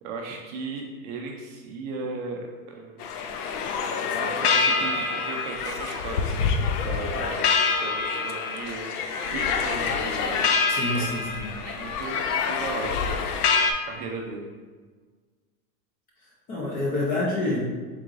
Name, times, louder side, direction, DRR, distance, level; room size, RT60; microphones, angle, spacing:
voice 1, 0.0-3.2 4.2-10.5 10.9-11.3 11.6-13.5 13.8-14.5, right 3 dB, 35° right, 0 dB, 0.5 m, -36 dB
sound 1, 3.0-13.7, left 5 dB, 70° left, 0.6 m, -26 dB
voice 2, 10.7-11.5 16.5-17.7, left 2 dB, 20° left, -4 dB, 0.4 m, -27 dB
4.4 x 3.8 x 2.5 m, 1.4 s
hypercardioid pair, 130°, 47 cm